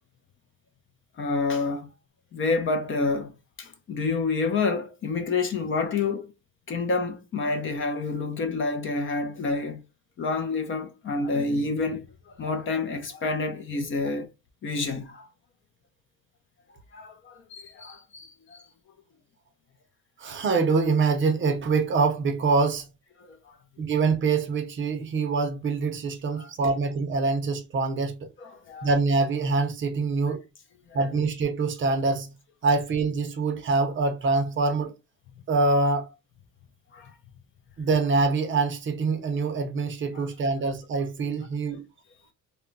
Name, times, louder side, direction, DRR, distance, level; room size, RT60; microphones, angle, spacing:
voice 1, 1.2-1.9 2.3-6.3 6.7-9.8 10.2-14.3 14.6-15.3 16.9-18.6 23.2-23.6 26.3-26.5 28.4-28.9 30.9-31.0 36.9-37.1 40.1-40.3, left 3 dB, 40° left, 0.5 m, -29 dB
voice 2, 20.2-22.9 23.8-28.3 28.8-30.4 30.9-32.3 32.6-34.9 35.5-36.1 37.8-41.8, right 3 dB, 35° right, 0.5 m, -25 dB
2.2 x 2.1 x 3.7 m
cardioid pair, 135°, 33 cm